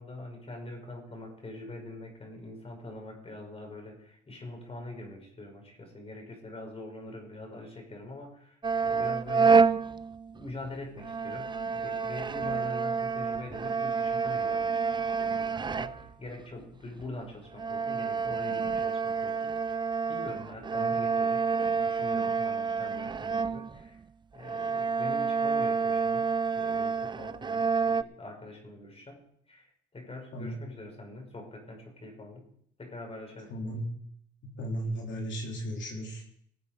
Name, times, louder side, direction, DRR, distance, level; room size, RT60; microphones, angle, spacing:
voice 1, 0.0-9.7 10.3-19.8 20.1-24.0 24.3-32.5 32.8-33.5, left 2 dB, 30° left, 2 dB, 4.9 m, -44 dB
sound 1, 8.6-10.7 11.0-16.3 17.0-17.1 17.5-24.0 24.4-28.0, right 5 dB, 25° right, 0.5 m, -28 dB
voice 2, 20.6-21.0 30.3-30.6 33.5-33.9 34.4-36.2, equal, 70° left, 0 dB, 3.3 m, -36 dB
19.0 x 7.5 x 5.1 m, 0.68 s
cardioid pair, 90°, 20 cm